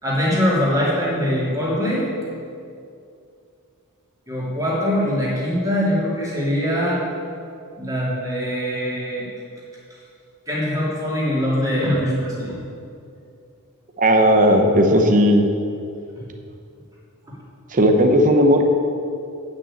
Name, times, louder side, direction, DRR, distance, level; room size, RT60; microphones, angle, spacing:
voice 1, 0.0-2.1 4.3-7.0 7.8-9.3 10.5-12.6 16.2-16.3 17.3-17.4, equal, 15° right, -6 dB, 2.8 m, -22 dB
voice 2, 14.0-15.5 17.7-18.6, equal, 35° right, 4 dB, 0.8 m, -15 dB
9.1 x 6.1 x 8.5 m, 2.4 s
head